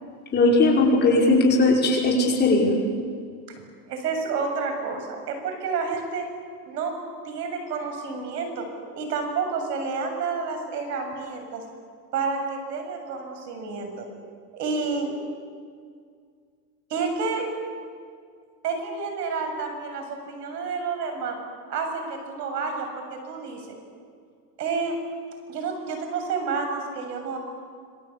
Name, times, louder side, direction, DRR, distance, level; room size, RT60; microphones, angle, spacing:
voice 1, 0.3-2.7, left 2 dB, 20° left, -1 dB, 5.6 m, -19 dB
voice 2, 3.9-6.3 6.7-6.9 7.2-8.7 8.9-11.6 12.1-14.1 14.5-15.1 16.9-17.5 18.6-21.4 21.7-23.7 24.6-25.0 25.5-27.4, right 4 dB, 85° right, 5 dB, 7.3 m, -29 dB
26.5 x 24.0 x 8.7 m, 2.1 s
supercardioid pair, 155°, 47 cm